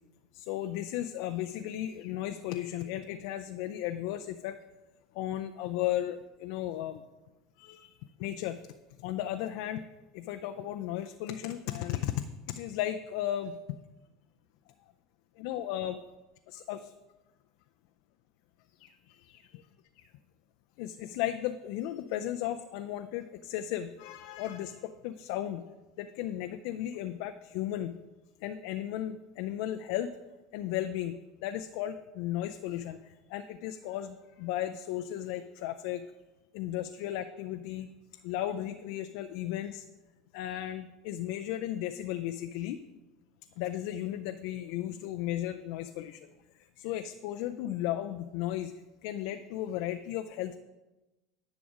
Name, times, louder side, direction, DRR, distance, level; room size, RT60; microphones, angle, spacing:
voice 1, 0.3-4.6 5.1-7.0 7.6-8.6 9.0-9.8 10.1-13.6 15.4-16.0 16.5-16.9 18.8-19.6 20.0-20.1 20.8-25.7 26.0-28.0 28.4-30.1 30.5-36.0 36.5-37.9 38.2-39.9 40.3-42.8 43.6-46.3 46.8-48.8 49.0-50.6, left 12 dB, 65° left, 8 dB, 0.4 m, -35 dB
10.5 x 6.1 x 4.9 m, 1.1 s
hypercardioid pair, 75°, 0 cm